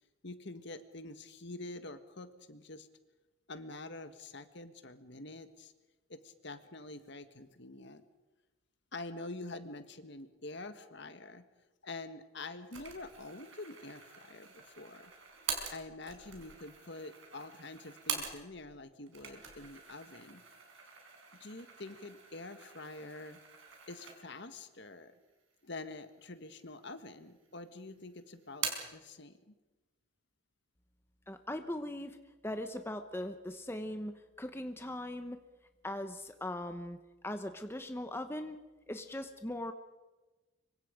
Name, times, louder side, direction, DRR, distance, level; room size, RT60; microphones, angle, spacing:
voice 1, 0.2-2.9 3.5-5.7 6.1-8.0 8.9-11.5 11.8-15.1 15.7-20.4 21.3-23.4 23.9-25.1 25.6-29.5, left 2 dB, 55° left, 10 dB, 1.6 m, -46 dB
sound 1, 12.7-18.7 19.0-24.5 24.9-25.0 25.9-26.5 26.8-27.6 27.9-29.0, right 6 dB, 65° right, 4.9 m, -44 dB
voice 2, 31.3-32.2 32.4-35.4 35.8-37.0 37.2-38.6 38.9-39.7, left 1 dB, 10° left, 7 dB, 1.0 m, -40 dB
25.5 x 24.0 x 5.1 m, 1.2 s
head